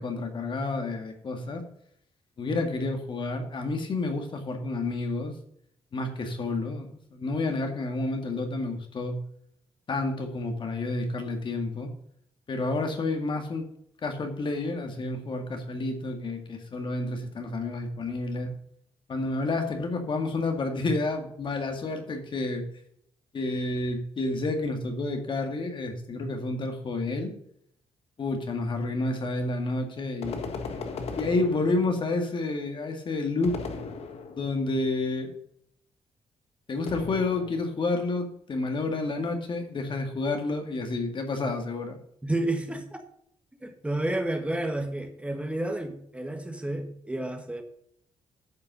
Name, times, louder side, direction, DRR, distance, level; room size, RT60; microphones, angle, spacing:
voice 1, 0.0-1.6 2.4-5.4 5.9-9.2 9.9-11.9 12.5-13.7 14.0-18.5 19.1-22.7 23.3-27.4 28.2-30.6 31.2-33.6 34.3-35.3 36.7-42.0, left 2 dB, 50° left, 5 dB, 2.0 m, -30 dB
sound 1, 30.2-32.2 33.4-34.6 36.9-37.8, left 4 dB, 70° left, 1.4 m, -37 dB
voice 2, 42.2-43.0 43.6-47.6, right 1 dB, 10° right, 5 dB, 1.6 m, -30 dB
9.6 x 5.5 x 6.7 m, 0.70 s
cardioid pair, 80°, 11 cm